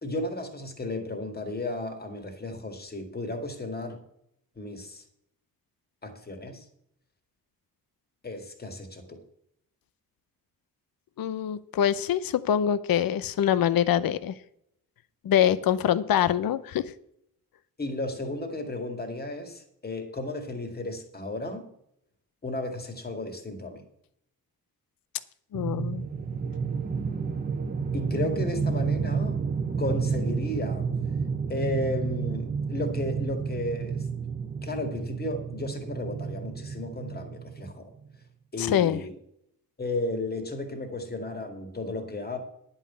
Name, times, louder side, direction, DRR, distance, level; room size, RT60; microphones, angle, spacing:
voice 1, 0.0-4.0 4.6-5.0 6.0-6.7 8.2-9.2 17.8-21.7 22.4-23.8 27.9-29.4 29.8-30.9 31.5-34.1 34.6-37.9 38.5-39.1 39.8-42.4, left 2 dB, 25° left, 5 dB, 2.0 m, -34 dB
voice 2, 11.2-14.3 15.2-16.9 25.5-26.1 38.6-39.0, left 10 dB, 65° left, 15 dB, 0.6 m, -24 dB
sound 1, 25.5-37.8, right 5 dB, 25° right, 0.8 m, -30 dB
10.5 x 5.6 x 8.3 m, 0.74 s
wide cardioid pair, 150°, 37 cm